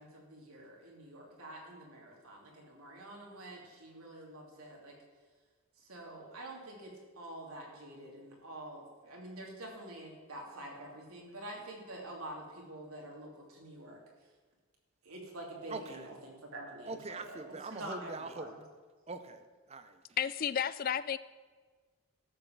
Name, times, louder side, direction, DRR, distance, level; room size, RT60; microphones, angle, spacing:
voice 1, 0.0-5.0 5.8-14.0 15.0-17.4 17.7-18.6, right 1 dB, 75° right, -1 dB, 2.8 m, -47 dB
voice 2, 15.7-16.1 16.9-18.5 19.1-20.0, right 3 dB, 30° right, 9 dB, 0.7 m, -43 dB
voice 3, 20.2-21.2, left 8 dB, 40° left, 16 dB, 0.3 m, -32 dB
13.0 x 5.8 x 7.1 m, 1.5 s
head